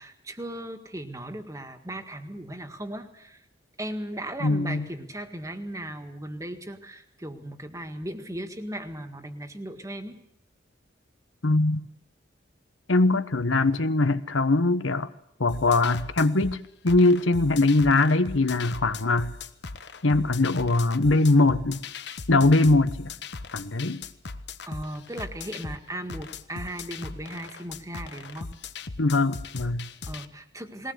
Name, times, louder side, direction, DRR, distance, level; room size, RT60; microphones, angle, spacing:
voice 1, 0.0-3.4 3.8-10.2 24.7-28.5 30.0-30.9, right 1 dB, 15° right, 1.8 m, -37 dB
voice 2, 4.4-4.9 11.4-11.9 12.9-15.1 15.4-16.6 16.8-19.3 20.0-21.8 22.3-23.1 23.5-24.0 29.0-29.9, left 2 dB, 85° left, 1.1 m, -22 dB
sound 1, 15.5-30.3, left 4 dB, 60° left, 1.1 m, -39 dB
20.5 x 18.5 x 8.1 m
head